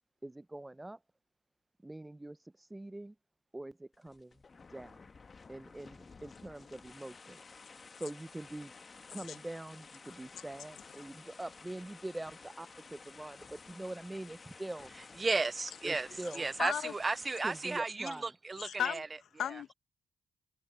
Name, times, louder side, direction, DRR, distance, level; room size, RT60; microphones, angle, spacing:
voice 1, 0.2-1.0 1.8-3.1 3.5-4.4 4.7-5.0 5.5-7.4 8.0-8.7 9.1-14.9 15.8-16.5 17.4-18.3, right 1 dB, 15° right, 1.1 m, -44 dB
sound 1, 3.9-17.8, left 4 dB, 45° left, 2.0 m, -54 dB
voice 2, 15.2-16.1 16.3-19.1, right 3 dB, 35° right, 0.6 m, -34 dB
voice 3, 16.2-16.9 18.6-19.7, left 9 dB, 70° left, 1.9 m, -37 dB
hypercardioid pair, 40°, 0 cm